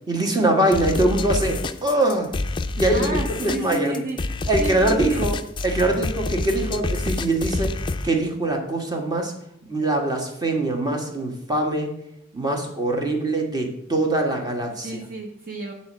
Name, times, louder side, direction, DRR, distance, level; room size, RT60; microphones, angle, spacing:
voice 1, 0.1-2.3 2.8-3.1 3.4-4.0 4.5-5.3 5.6-7.8 8.0-9.3 9.7-11.9 12.3-14.9, right 2 dB, 20° right, 2 dB, 1.4 m, -23 dB
sound 1, 0.7-8.1, left 2 dB, 25° left, 0.4 m, -27 dB
voice 2, 2.8-4.2 4.6-5.3 14.8-15.7, right 1 dB, 45° right, 1 dB, 1.0 m, -31 dB
8.5 x 4.3 x 7.3 m, 0.77 s
head